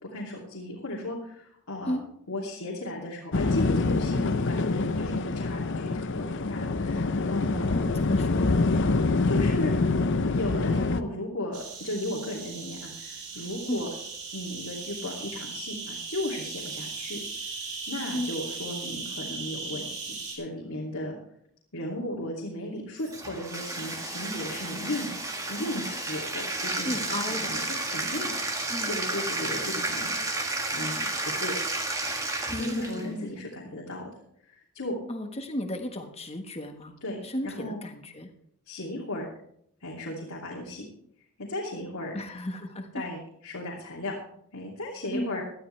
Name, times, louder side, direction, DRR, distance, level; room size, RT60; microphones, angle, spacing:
voice 1, 0.0-1.9 2.3-7.7 9.2-9.7 10.3-13.9 14.3-17.2 17.9-21.2 21.7-25.1 25.5-30.1 30.7-31.0 31.4-31.5 32.5-34.0 34.5-34.9 37.0-37.2 37.4-37.8 38.7-39.3 39.8-40.8 41.4-42.1 42.9-43.2 43.4-44.1 44.5-45.4, left 1 dB, 80° left, -4 dB, 2.8 m, -35 dB
sound 1, 3.3-11.0, left 3 dB, 55° left, 0.7 m, -25 dB
voice 2, 7.7-8.6 13.7-13.8 18.1-18.3 26.8-27.5 28.7-29.0 32.5-33.3 35.1-36.9 37.2-38.3 42.1-43.0 45.1-45.3, left 1 dB, 25° left, 5 dB, 1.4 m, -34 dB
sound 2, 11.5-20.4, right 4 dB, 80° right, 4.2 m, -38 dB
Bathtub (filling or washing), 23.0-33.1, right 2 dB, 15° right, 1.6 m, -32 dB
17.0 x 12.5 x 3.3 m, 0.69 s
head